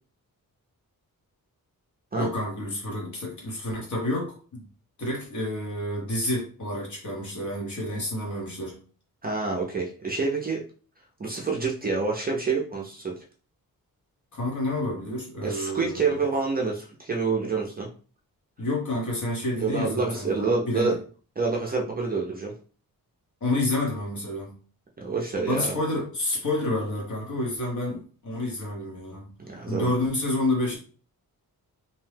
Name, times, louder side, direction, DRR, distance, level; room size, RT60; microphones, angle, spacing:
voice 1, 2.1-4.6 5.0-8.8 14.3-16.2 18.6-21.0 23.4-24.6 25.5-29.3 29.7-30.8, left 1 dB, 55° left, -2 dB, 1.1 m, -29 dB
voice 2, 9.2-10.6 11.2-13.2 15.4-17.9 19.6-20.9 21.4-22.5 25.0-25.7 29.5-29.9, right 4 dB, 25° right, -1 dB, 0.4 m, -27 dB
2.7 x 2.2 x 3.2 m, 0.38 s
wide cardioid pair, 170°, 36 cm